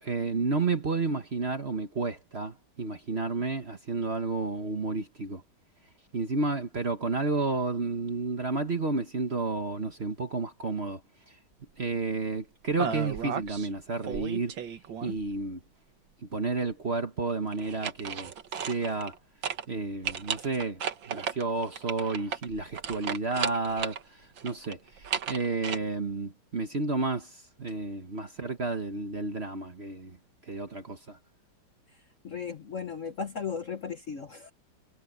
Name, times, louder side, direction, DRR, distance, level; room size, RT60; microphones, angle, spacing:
voice 1, 0.0-5.4 6.1-11.0 11.3-11.4 11.8-14.5 15.0-15.6 16.2-18.3 18.6-19.2 19.7-20.8 21.1-30.2 30.5-31.2, right 3 dB, 35° right, 1.3 m, -31 dB
sound 1, 12.8-13.7 14.0-15.3 17.5-19.2 19.4-19.6 20.0-24.0 24.4-25.8, right 7 dB, 65° right, 2.1 m, -34 dB
voice 2, 32.2-34.5, left 6 dB, 45° left, 1.2 m, -36 dB
omnidirectional pair, 2.2 m